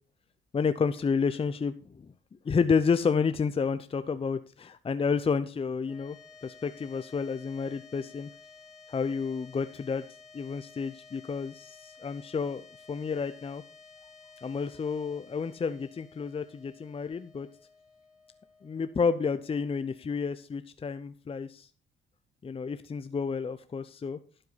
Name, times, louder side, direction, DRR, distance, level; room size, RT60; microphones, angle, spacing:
voice 1, 0.5-1.9 2.4-6.2 6.4-8.3 8.9-10.0 10.3-13.6 14.4-17.5 18.6-21.7 22.4-24.2, left 5 dB, 30° left, 11 dB, 0.6 m, -30 dB
sound 1, 5.8-20.3, left 4 dB, 5° right, 2.8 m, -54 dB
12.0 x 7.9 x 4.1 m, 0.40 s
cardioid pair, 90°, 20 cm